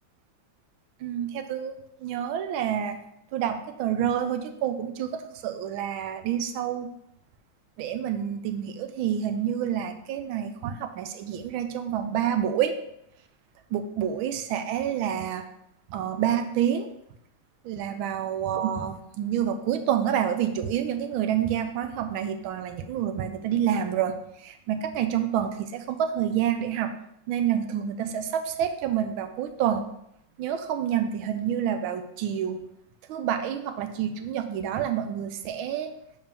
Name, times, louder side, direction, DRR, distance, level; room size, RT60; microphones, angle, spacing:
voice 1, 1.0-3.0 3.3-6.9 7.8-12.7 13.7-15.4 15.9-16.9 17.6-26.9 27.3-29.8 30.4-32.6 33.1-35.9, right 9 dB, 85° right, 8 dB, 1.4 m, -28 dB
6.8 x 4.5 x 3.4 m, 0.76 s
omnidirectional pair, 2.2 m